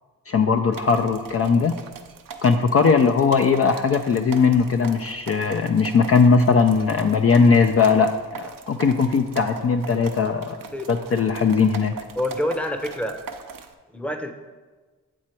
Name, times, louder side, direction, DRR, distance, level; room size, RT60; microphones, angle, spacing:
voice 1, 0.3-1.7 2.4-10.6 10.9-11.9, left 5 dB, 40° left, 5 dB, 0.5 m, -19 dB
sound 1, 0.7-13.7, right 5 dB, 65° right, 0.7 m, -40 dB
voice 2, 12.2-13.1 13.9-14.3, left 1 dB, 5° left, 6 dB, 0.7 m, -27 dB
7.4 x 4.5 x 4.4 m, 1.3 s
cardioid pair, 50°, 36 cm